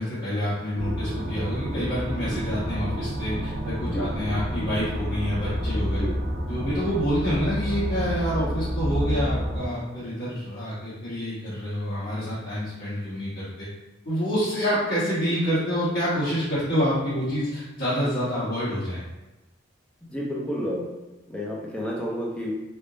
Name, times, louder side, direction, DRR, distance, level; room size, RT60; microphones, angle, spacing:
voice 1, 0.0-6.0 6.5-13.7 14.0-19.0, equal, 50° left, -14 dB, 1.3 m, -27 dB
sound 1, 0.8-9.7, equal, 50° right, 0.4 m, -29 dB
voice 2, 3.8-4.4 5.8-6.1 20.1-20.9 21.3-22.5, equal, 5° left, -4 dB, 0.6 m, -31 dB
3.4 x 2.1 x 3.8 m, 1.1 s
head